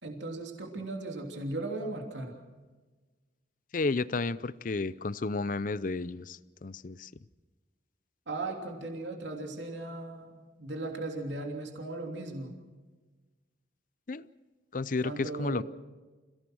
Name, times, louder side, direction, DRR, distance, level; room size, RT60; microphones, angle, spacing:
voice 1, 0.0-2.4 8.3-12.5 15.0-15.6, right 2 dB, 75° right, 2 dB, 3.1 m, -37 dB
voice 2, 3.7-7.1 14.1-14.3 14.7-15.6, left 3 dB, 45° left, 18 dB, 0.6 m, -32 dB
28.0 x 17.5 x 6.3 m, 1.3 s
head